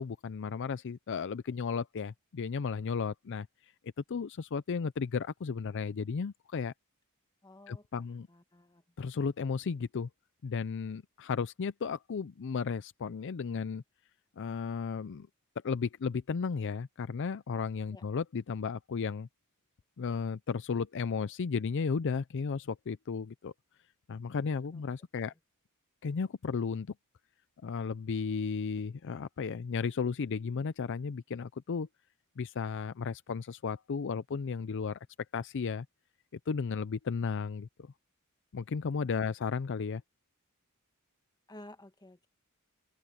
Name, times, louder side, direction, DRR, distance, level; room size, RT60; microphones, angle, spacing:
voice 1, 0.0-3.5 4.1-6.7 7.7-8.3 9.0-10.1 10.4-13.8 14.4-15.3 15.6-19.3 20.0-23.5 24.1-25.3 26.0-26.9 27.6-31.9 32.4-35.0 35.3-35.9 36.5-37.9 38.5-40.0, left 5 dB, 55° left, 0.4 m, -34 dB
voice 2, 7.4-8.8 17.9-18.0 24.7-24.8 25.1-25.4 39.1-39.3 41.5-42.3, left 1 dB, 20° left, 1.3 m, -53 dB
open air
head